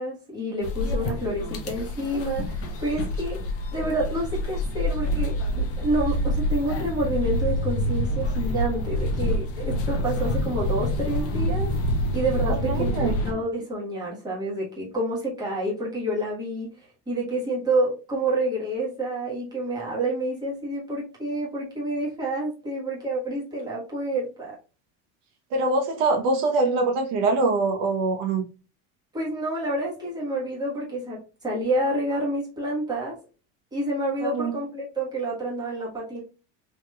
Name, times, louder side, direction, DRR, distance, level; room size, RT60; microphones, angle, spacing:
voice 1, 0.0-11.7 12.1-24.5 29.1-33.2 33.7-36.2, right 1 dB, 10° right, -5 dB, 1.3 m, -28 dB
sound 1, 0.6-13.3, left 1 dB, 30° left, 0.6 m, -27 dB
voice 2, 12.4-13.1 25.5-28.4 34.2-34.5, right 3 dB, 70° right, 3 dB, 0.9 m, -24 dB
3.4 x 2.9 x 2.2 m, 0.32 s
cardioid pair, 150°, 44 cm